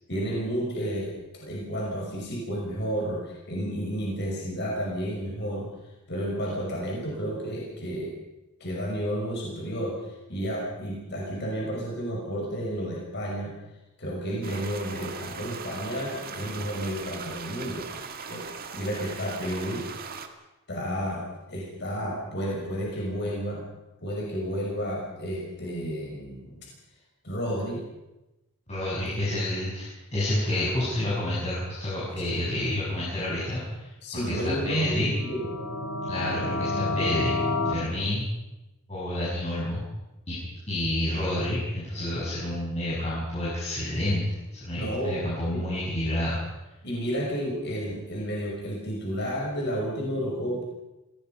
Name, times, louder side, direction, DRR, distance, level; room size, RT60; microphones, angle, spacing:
voice 1, 0.1-5.7 6.1-8.1 8.6-10.0 10.3-13.5 14.0-17.9 18.3-18.4 18.7-19.9 20.7-23.6 24.0-26.7 27.2-27.8 29.2-29.3 32.4-32.5 34.0-35.5 42.2-42.3 44.7-45.2 45.5-45.6 46.8-50.6, equal, 50° left, -2 dB, 5.8 m, -31 dB
sound 1, 14.4-20.3, right 5 dB, 40° right, 1.8 m, -39 dB
voice 2, 28.7-33.9 34.3-35.1 36.1-37.4 37.7-38.3 38.9-39.8 40.3-40.4 40.7-44.3 44.6-46.4, left 1 dB, 30° left, -8 dB, 6.7 m, -29 dB
sound 2, 35.2-37.7, left 2 dB, 85° left, 3.1 m, -29 dB
25.5 x 18.0 x 5.6 m, 1.0 s
head